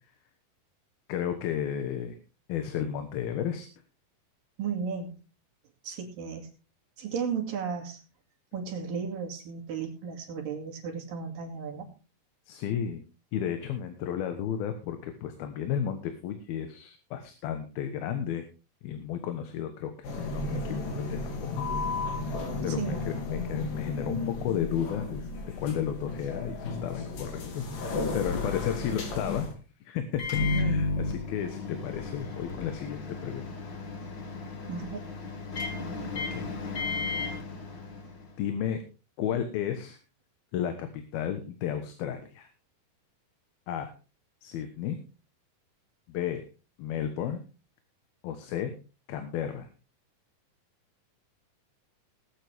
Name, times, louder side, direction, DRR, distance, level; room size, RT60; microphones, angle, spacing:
voice 1, 1.1-2.2 2.5-3.7 12.5-13.0 13.3-18.4 18.8-21.6 22.0-25.3 25.6-29.5 29.9-30.2 30.5-30.9 31.3-33.7 36.1-36.5 38.4-38.8 39.2-40.0 40.5-42.5 43.7-43.9 44.4-45.0 46.1-46.4 46.8-47.4 48.2-48.7 49.1-49.7, left 9 dB, 85° left, 7 dB, 3.1 m, -33 dB
voice 2, 4.6-5.1 5.8-6.5 7.0-8.0 8.5-11.9 22.7-23.1 30.4-30.9 34.7-35.0, right 6 dB, 70° right, 2 dB, 4.1 m, -34 dB
sound 1, 20.0-29.5, left 3 dB, 65° left, 4.1 m, -34 dB
Microwave oven, 30.1-38.3, left 3 dB, 40° left, 1.7 m, -33 dB
20.0 x 9.1 x 3.5 m, 0.33 s
omnidirectional pair, 4.2 m